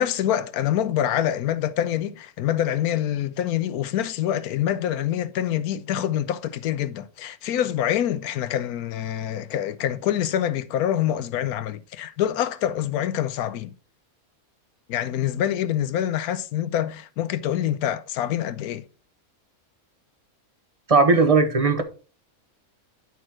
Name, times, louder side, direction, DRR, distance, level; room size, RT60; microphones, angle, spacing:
voice 1, 0.0-13.7 14.9-18.8, left 11 dB, 90° left, 1.2 m, -26 dB
voice 2, 20.9-21.8, right 4 dB, 25° right, 1.1 m, -17 dB
11.0 x 4.4 x 4.5 m
omnidirectional pair, 1.5 m